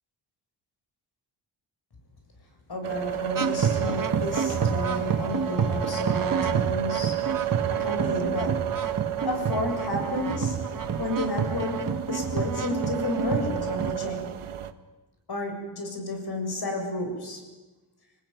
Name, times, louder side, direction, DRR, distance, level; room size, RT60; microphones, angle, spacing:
voice 1, 2.7-7.4 7.7-8.8 9.2-14.5 15.3-17.4, left 1 dB, 50° left, 3 dB, 7.7 m, -32 dB
sound 1, 2.8-14.7, right 12 dB, 80° right, 1.6 m, -32 dB
sound 2, 3.4-13.9, right 5 dB, 40° right, 1.6 m, -29 dB
28.0 x 19.0 x 9.8 m, 1.2 s
wide cardioid pair, 115°, 50 cm